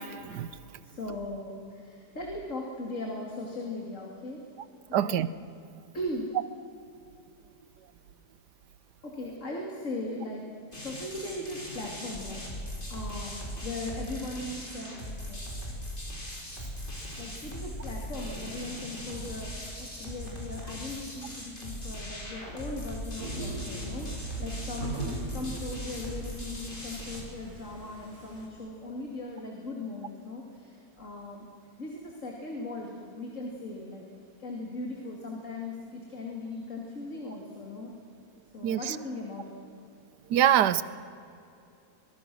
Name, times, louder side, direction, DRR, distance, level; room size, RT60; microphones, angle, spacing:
voice 1, 0.8-4.4 4.9-5.2 5.9-6.3 9.0-10.5 10.8-15.4 17.2-31.5 31.8-34.0 34.4-37.9 38.5-39.6, left 2 dB, 50° left, 0 dB, 2.9 m, -39 dB
voice 2, 4.9-5.3 38.6-39.0 40.3-40.8, right 11 dB, 85° right, 16 dB, 1.4 m, -24 dB
sound 1, 10.7-27.2, equal, 30° left, 4.1 m, -39 dB
sound 2, 23.2-28.5, right 2 dB, 60° right, 3.8 m, -40 dB
24.5 x 22.0 x 6.2 m, 2.6 s
omnidirectional pair, 1.8 m